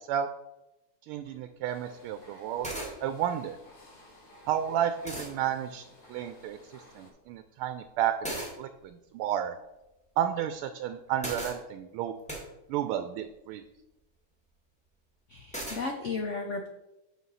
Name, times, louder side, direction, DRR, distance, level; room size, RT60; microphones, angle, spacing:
voice 1, 1.1-2.7 3.0-3.6 4.5-5.8 6.1-8.2 8.6-9.6 10.2-12.1 12.7-13.6, right 10 dB, 80° right, 9 dB, 1.4 m, -31 dB
sound 1, 1.3-1.4 2.4-2.5 2.6-2.9 4.5-4.6 5.1-5.3 8.2-8.5 11.2-11.6 12.3-12.4 15.5-15.8, right 1 dB, 5° left, 1.5 m, -36 dB
sound 2, 1.6-7.1, left 1 dB, 50° left, 3.4 m, -55 dB
voice 2, 15.3-16.7, left 3 dB, 90° left, 3 dB, 0.6 m, -34 dB
6.4 x 6.3 x 5.4 m, 0.97 s
omnidirectional pair, 2.4 m